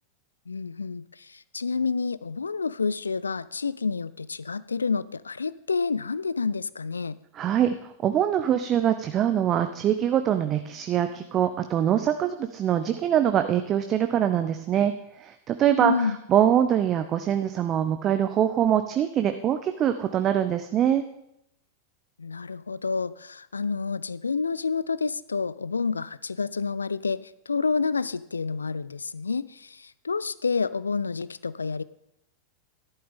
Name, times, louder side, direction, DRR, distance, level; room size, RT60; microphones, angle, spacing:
voice 1, 0.5-7.2 15.8-16.2 22.2-31.8, left 4 dB, 75° left, 18 dB, 0.4 m, -29 dB
voice 2, 7.3-21.0, right 10 dB, 30° right, 9 dB, 0.6 m, -24 dB
13.5 x 11.5 x 3.7 m, 0.80 s
figure-of-eight pair, 90°, 0 cm